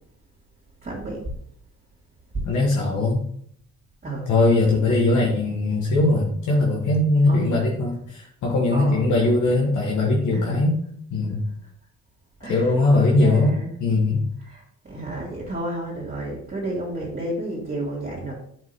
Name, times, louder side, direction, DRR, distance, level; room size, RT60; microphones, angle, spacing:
voice 1, 0.8-1.3 2.3-2.4 4.0-4.3 4.7-4.9 7.3-7.7 8.7-9.6 10.3-10.6 11.6-11.7 12.4-13.7 14.4-18.3, right 1 dB, 30° right, -5 dB, 3.1 m, -32 dB
voice 2, 2.4-3.2 4.3-10.8 11.1-11.4 12.4-14.2, left 2 dB, 75° left, -2 dB, 1.7 m, -20 dB
7.9 x 5.5 x 3.7 m, 0.67 s
cardioid pair, 90°, 30 cm